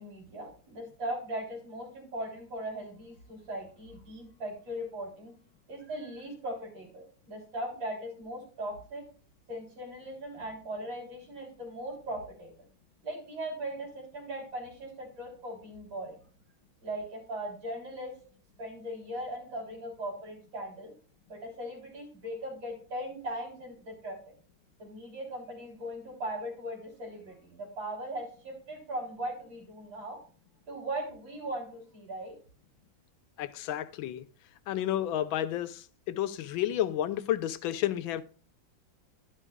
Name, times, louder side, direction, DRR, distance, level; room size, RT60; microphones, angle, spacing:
voice 1, 0.0-5.3 5.7-9.0 9.5-12.5 13.0-16.2 16.8-18.1 18.6-20.9 21.3-24.3 24.8-30.2 30.7-32.4, right 1 dB, 80° right, 4.4 m, -39 dB
voice 2, 33.4-34.2 34.7-38.2, left 12 dB, 80° left, 1.4 m, -31 dB
11.0 x 11.0 x 2.3 m
omnidirectional pair, 2.1 m